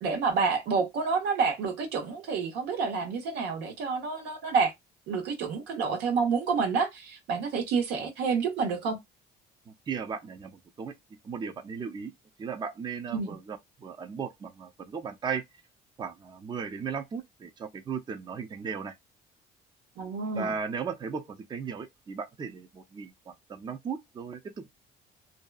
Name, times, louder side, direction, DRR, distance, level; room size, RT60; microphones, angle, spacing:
voice 1, 0.0-4.7 5.1-9.0 13.1-13.3 20.0-20.5, right 5 dB, 90° right, 0.9 m, -28 dB
voice 2, 9.7-10.9 11.2-12.1 12.4-15.4 16.0-18.9 20.3-24.7, right 6 dB, 25° right, 0.4 m, -36 dB
2.6 x 2.3 x 2.2 m
cardioid pair, 110°, 17 cm